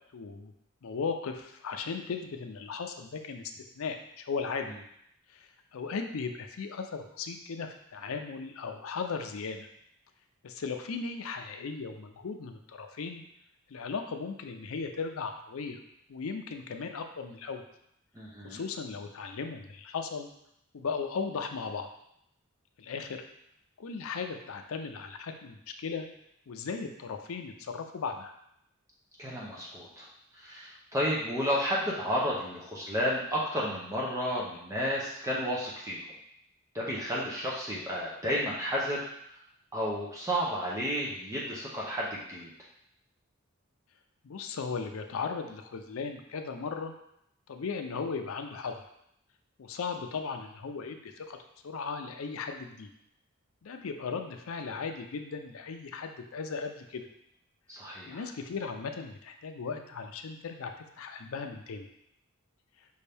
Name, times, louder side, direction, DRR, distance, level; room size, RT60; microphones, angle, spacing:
voice 1, 0.1-0.5 0.8-3.4 3.7-4.7 5.3-9.7 10.4-13.2 13.7-15.8 16.1-17.6 18.4-20.3 20.7-21.9 22.8-23.2 23.8-26.1 26.5-28.3 44.2-46.9 47.5-48.7 49.6-51.4 51.6-52.9 53.6-57.0 58.1-61.8, left 5 dB, 70° left, 5 dB, 0.5 m, -37 dB
voice 2, 18.1-18.6 29.2-30.1 30.3-36.0 36.7-39.0 39.7-42.5 57.7-58.2, equal, 15° right, -5 dB, 0.6 m, -32 dB
5.5 x 2.6 x 3.4 m, 0.75 s
head